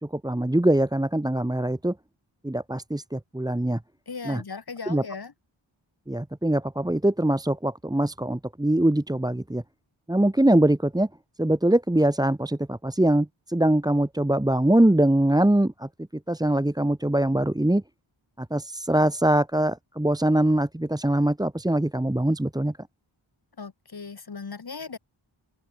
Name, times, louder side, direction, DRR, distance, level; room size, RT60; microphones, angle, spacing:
voice 1, 0.0-1.9 2.4-3.8 4.3-4.4 4.9-5.0 6.1-9.6 10.1-11.1 11.4-15.9 16.3-17.8 18.4-22.7, right 1 dB, 10° right, 0.9 m, -23 dB
voice 2, 4.1-5.3 23.6-25.0, left 5 dB, 50° left, 1.3 m, -37 dB
open air
wide cardioid pair, 40°, 49 cm